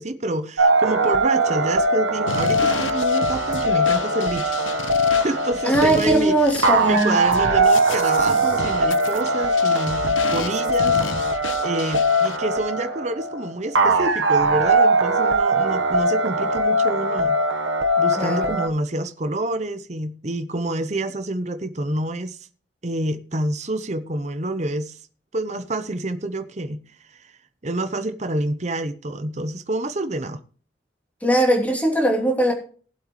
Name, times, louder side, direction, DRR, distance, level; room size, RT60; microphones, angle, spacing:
voice 1, 0.0-4.7 5.1-6.3 6.8-17.4 18.0-22.5 22.8-25.0 25.3-26.8 27.1-27.3 27.6-30.4, right 2 dB, 35° right, 0.8 m, -28 dB
sound 1, 0.6-18.7, right 1 dB, 85° right, 1.2 m, -21 dB
sound 2, 2.3-12.4, left 4 dB, 90° left, 1.0 m, -33 dB
voice 2, 5.6-7.2 18.2-18.6 31.2-32.5, right 1 dB, 10° left, 3.0 m, -20 dB
19.0 x 7.9 x 3.1 m
head